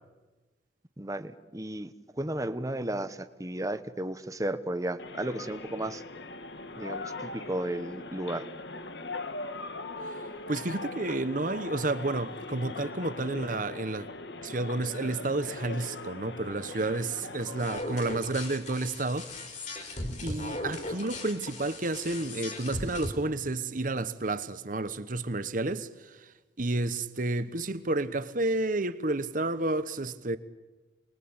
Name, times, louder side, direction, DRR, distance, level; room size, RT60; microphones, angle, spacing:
voice 1, 1.0-6.0 6.8-8.4, right 1 dB, 20° right, 1.1 m, -34 dB
sound 1, 5.0-17.8, left 3 dB, 75° left, 1.5 m, -40 dB
voice 2, 10.0-14.1 14.4-19.4 19.7-26.3 26.6-30.4, right 2 dB, 50° right, 1.2 m, -31 dB
sound 2, 17.6-23.1, left 2 dB, 45° left, 4.1 m, -38 dB
28.5 x 21.0 x 8.8 m
head